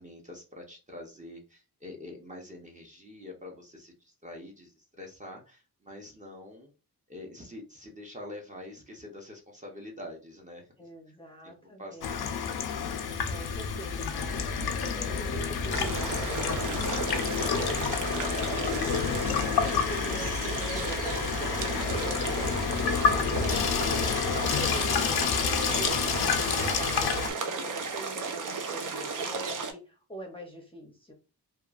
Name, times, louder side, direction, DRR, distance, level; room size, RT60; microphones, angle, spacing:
voice 1, 0.0-6.7 7.1-10.7 11.1-11.2 11.4-11.5 11.8-12.4, left 1 dB, 20° right, 0 dB, 0.7 m, -45 dB
voice 2, 10.8-12.3 13.2-14.0 14.8-17.8 18.4-24.1 24.5-25.3 25.7-31.1, equal, 15° left, 2 dB, 0.6 m, -43 dB
Water tap faucet / Sink (filling or washing), 12.0-27.3, left 6 dB, 85° left, 0.5 m, -29 dB
sound 1, 13.9-23.5, left 1 dB, 80° right, 1.2 m, -40 dB
sound 2, 15.7-29.7, right 4 dB, 60° right, 0.6 m, -34 dB
2.9 x 2.2 x 2.3 m, 0.32 s
wide cardioid pair, 100°, 37 cm